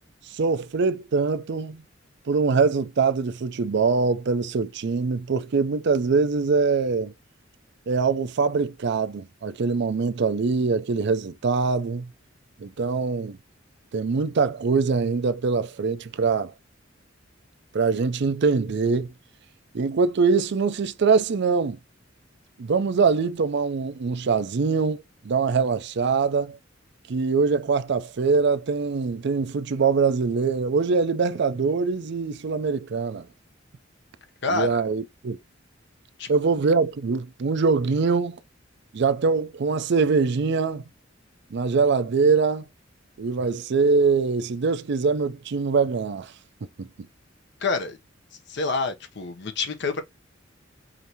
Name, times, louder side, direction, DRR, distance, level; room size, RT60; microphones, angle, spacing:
voice 1, 0.3-1.8 2.3-7.1 7.9-12.1 12.6-13.4 13.9-16.5 17.7-19.1 19.7-21.8 22.6-26.6 27.1-33.3 34.5-35.4 36.3-38.4 38.9-40.8 41.5-42.7 43.2-46.3 46.8-46.9, right 4 dB, 60° right, 0.5 m, -23 dB
voice 2, 34.4-34.8 36.2-36.3 47.6-48.0 48.5-50.0, left 3 dB, 65° left, 0.8 m, -27 dB
5.0 x 2.7 x 2.8 m
head